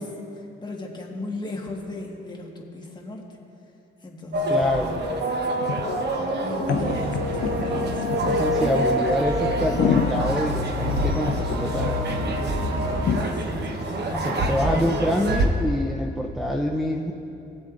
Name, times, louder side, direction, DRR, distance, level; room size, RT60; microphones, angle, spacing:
voice 1, 0.0-3.3 4.0-5.0 6.2-8.1 13.2-14.9, left 2 dB, 20° left, -1 dB, 1.6 m, -37 dB
sound 1, 4.3-15.4, right 1 dB, 55° right, 1.0 m, -26 dB
voice 2, 4.5-5.0 8.2-12.0 14.1-17.1, left 1 dB, ahead, 1 dB, 0.6 m, -26 dB
sound 2, 4.6-4.7 4.9-5.0 5.6-6.0 6.5-8.5 9.0-9.1 9.5-11.5 11.8-11.9 12.2-12.3 12.6-12.7 13.0-13.2, left 8 dB, 70° left, 0.6 m, -27 dB
sound 3, 6.7-13.3, left 1 dB, 85° right, 1.4 m, -31 dB
19.0 x 7.8 x 2.5 m, 2.9 s
cardioid pair, 90°, 20 cm